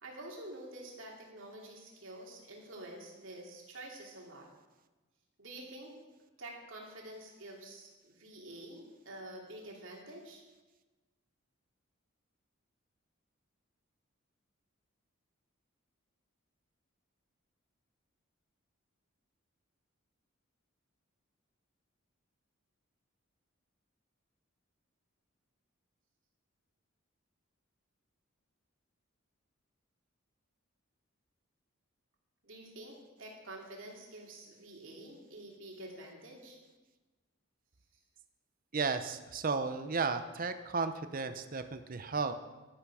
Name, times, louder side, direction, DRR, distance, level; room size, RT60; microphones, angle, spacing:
voice 1, 0.0-4.5 5.4-5.9 6.4-10.4 32.4-36.6, right 1 dB, 65° right, -1 dB, 2.9 m, -48 dB
voice 2, 38.7-42.4, right 4 dB, 40° right, 9 dB, 0.7 m, -34 dB
12.0 x 11.5 x 4.9 m, 1.2 s
head